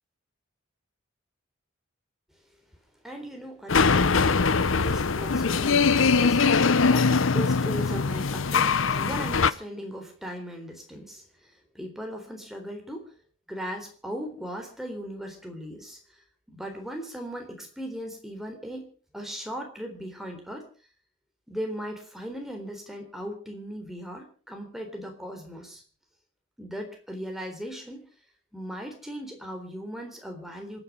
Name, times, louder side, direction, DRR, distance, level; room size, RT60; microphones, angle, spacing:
voice 1, 3.0-13.1 13.5-16.0 16.5-20.6 21.5-25.8 26.6-28.1 28.5-30.8, equal, ahead, 3 dB, 3.7 m, -38 dB
sound 1, 3.7-9.5, left 5 dB, 70° left, 0.8 m, -22 dB
27.0 x 10.0 x 5.3 m, 0.40 s
head